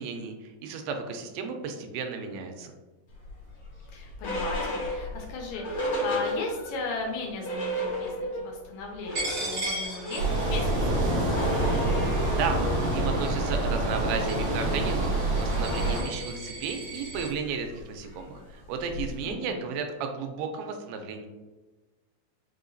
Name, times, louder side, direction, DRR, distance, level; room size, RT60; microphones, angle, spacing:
voice 1, 0.0-2.7 12.3-21.3, right 5 dB, 85° right, 5 dB, 2.3 m, -34 dB
sound 1, 3.2-6.9 7.2-7.3 7.4-8.5 8.8-19.3, equal, 55° left, 1.7 m, -35 dB
voice 2, 3.9-11.6 19.2-19.7, left 3 dB, 80° left, 1 dB, 2.1 m, -37 dB
Coin (dropping), 9.1-17.3, right 1 dB, 50° right, 1.7 m, -38 dB
sound 2, 10.2-16.0, right 1 dB, 65° right, 1.8 m, -26 dB
5.4 x 2.8 x 2.6 m, 1.2 s
omnidirectional pair, 4.2 m